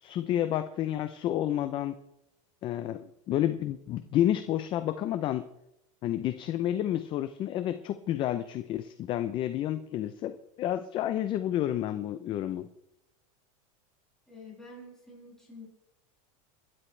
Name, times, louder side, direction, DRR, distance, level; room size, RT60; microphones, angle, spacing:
voice 1, 0.0-1.9 2.6-5.5 6.0-12.7, left 12 dB, 30° left, 10 dB, 0.6 m, -30 dB
voice 2, 14.3-15.7, left 2 dB, 5° left, -6 dB, 7.3 m, -48 dB
29.5 x 13.0 x 3.3 m, 0.84 s
supercardioid pair, 160°, 18 cm